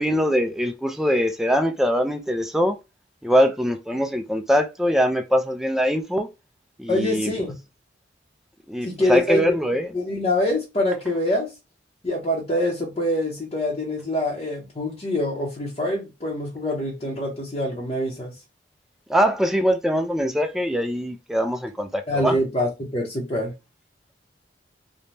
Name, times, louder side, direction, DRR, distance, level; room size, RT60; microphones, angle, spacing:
voice 1, 0.0-2.8 3.2-6.3 6.8-7.3 8.7-9.9 19.1-22.4, equal, ahead, 0.3 m, -22 dB
voice 2, 6.9-7.6 8.8-9.4 9.9-11.5 12.0-18.3 22.1-23.5, left 1 dB, 30° left, 0.7 m, -25 dB
3.2 x 2.1 x 2.6 m
head